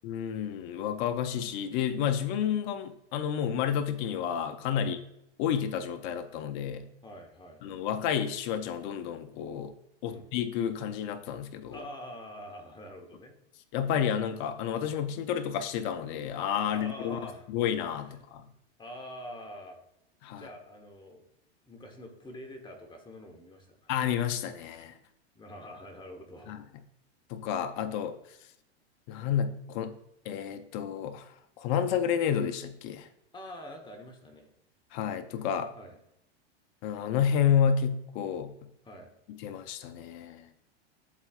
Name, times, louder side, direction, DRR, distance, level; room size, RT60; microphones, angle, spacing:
voice 1, 0.0-5.0 5.4-6.9 7.6-9.7 10.0-11.8 13.7-17.2 17.5-18.5 20.2-20.5 23.9-24.9 26.5-26.6 27.3-28.1 29.1-29.9 30.2-33.1 34.9-35.7 36.8-38.5 39.4-40.5, left 8 dB, 45° left, 10 dB, 0.6 m, -30 dB
voice 2, 7.0-7.6 10.0-10.3 11.7-13.4 16.7-17.5 18.0-18.1 18.8-19.8 20.3-21.2 21.6-23.9 25.3-26.5 33.3-34.5 35.8-36.0 38.8-39.1, equal, 15° left, 4 dB, 1.1 m, -45 dB
11.0 x 4.1 x 2.4 m, 0.82 s
hypercardioid pair, 120°, 33 cm